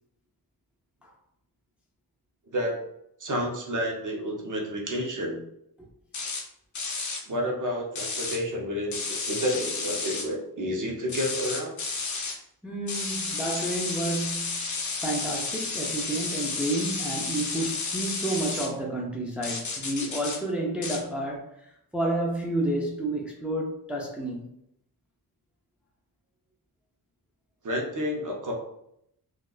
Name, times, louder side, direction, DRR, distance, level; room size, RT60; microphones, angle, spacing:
voice 1, 2.5-2.8 3.2-5.4 7.3-11.7 27.6-28.5, equal, 50° right, 0 dB, 0.8 m, -30 dB
sound 1, 6.1-6.4 6.7-7.2 8.0-8.4 8.9-10.3 11.1-12.4 12.9-18.7 19.4-20.4 20.8-21.0, left 4 dB, 45° left, 0.6 m, -32 dB
voice 2, 12.6-14.7 15.0-24.4, right 1 dB, 5° right, -2 dB, 0.4 m, -30 dB
3.8 x 2.4 x 2.4 m, 0.76 s
wide cardioid pair, 140°, 40 cm